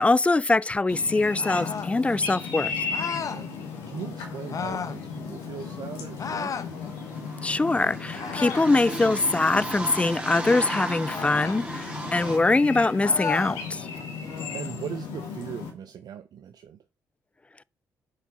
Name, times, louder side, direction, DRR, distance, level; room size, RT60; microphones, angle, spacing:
voice 1, 0.0-2.7 7.4-13.8, left 2 dB, 15° left, 0.4 m, -23 dB
sound 1, 0.9-15.7, left 5 dB, 90° left, 1.6 m, -36 dB
sound 2, 1.4-1.9 2.9-3.4 4.5-5.0 6.2-6.7 8.1-8.8 11.0-11.6 13.0-13.6, left 6 dB, 50° left, 0.8 m, -33 dB
voice 2, 3.3-6.6 12.0-12.4 14.2-16.8, right 9 dB, 65° right, 0.5 m, -40 dB
sound 3, 5.9-6.0 6.1-12.4, right 1 dB, 15° right, 2.2 m, -36 dB
7.4 x 4.7 x 4.1 m
supercardioid pair, 50°, 7 cm